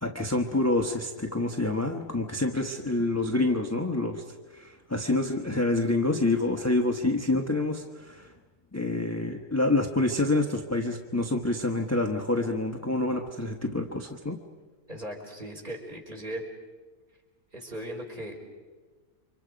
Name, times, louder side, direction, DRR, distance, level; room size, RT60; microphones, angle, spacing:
voice 1, 0.0-4.2 4.5-8.3 8.7-14.4, left 2 dB, 10° left, 3 dB, 0.9 m, -27 dB
voice 2, 14.9-16.4 17.5-18.4, right 1 dB, 35° right, 1 dB, 4.7 m, -38 dB
29.5 x 25.0 x 5.2 m, 1.4 s
omnidirectional pair, 1.6 m